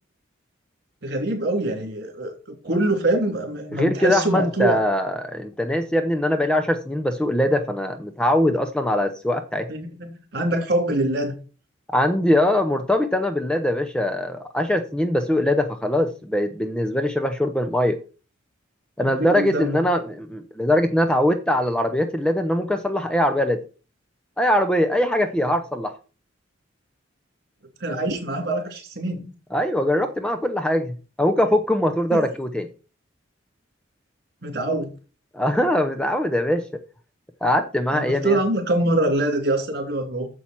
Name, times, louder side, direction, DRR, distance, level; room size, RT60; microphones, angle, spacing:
voice 1, 1.0-2.3 2.6-4.8 9.7-11.3 19.0-19.8 27.8-29.3 32.1-32.3 34.4-34.9 37.9-40.3, right 1 dB, 55° right, 4 dB, 3.2 m, -24 dB
voice 2, 3.7-9.7 11.9-18.0 19.0-23.6 24.4-25.9 29.5-32.7 35.3-36.7 37.4-38.4, left 1 dB, 5° left, 7 dB, 0.6 m, -22 dB
8.6 x 7.2 x 4.5 m, 0.34 s
head